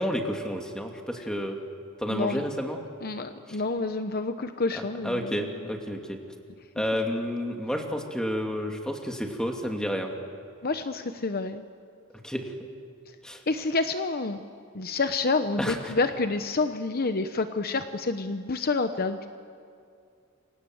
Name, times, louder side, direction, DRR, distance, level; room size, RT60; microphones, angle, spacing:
voice 1, 0.0-1.6 2.0-2.8 3.5-3.6 4.7-6.2 6.7-10.1 12.2-12.5 13.2-13.4 15.6-15.9, equal, 5° left, 2 dB, 2.6 m, -30 dB
voice 2, 2.1-2.4 3.0-5.3 10.6-11.6 13.5-14.4 14.7-19.3, left 3 dB, 45° left, 9 dB, 0.9 m, -28 dB
28.5 x 25.5 x 8.0 m, 2.5 s
head